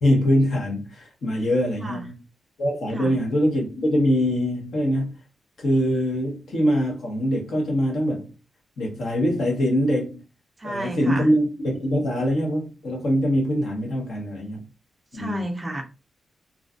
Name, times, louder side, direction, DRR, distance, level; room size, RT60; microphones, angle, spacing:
voice 1, 0.0-2.2 2.6-5.2 5.6-8.3 8.8-10.2 10.6-14.6 15.1-15.5, equal, 60° left, 0.9 m, -23 dB
voice 2, 10.6-11.3 15.1-15.8, right 2 dB, 15° right, 0.4 m, -31 dB
2.5 x 2.2 x 2.4 m
wide cardioid pair, 170°, 0 cm